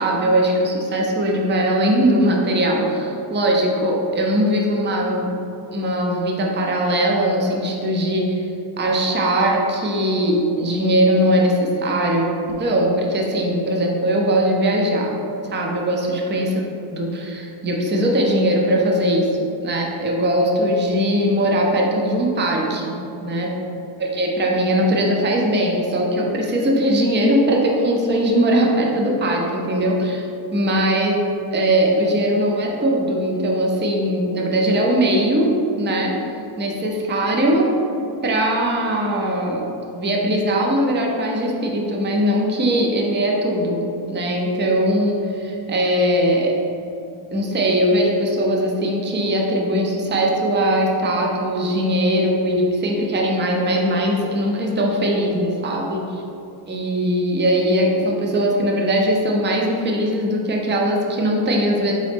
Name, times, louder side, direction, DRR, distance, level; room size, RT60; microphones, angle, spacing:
voice 1, 0.0-5.3 5.7-8.4 8.8-15.1 15.4-22.9 23.2-23.6 24.0-30.3 30.5-31.2 31.5-36.1 36.6-37.7 38.2-46.6 47.3-56.2 56.7-61.9, right 1 dB, 20° right, 0 dB, 0.5 m, -20 dB
4.0 x 3.7 x 3.5 m, 2.8 s
cardioid pair, 125°, 49 cm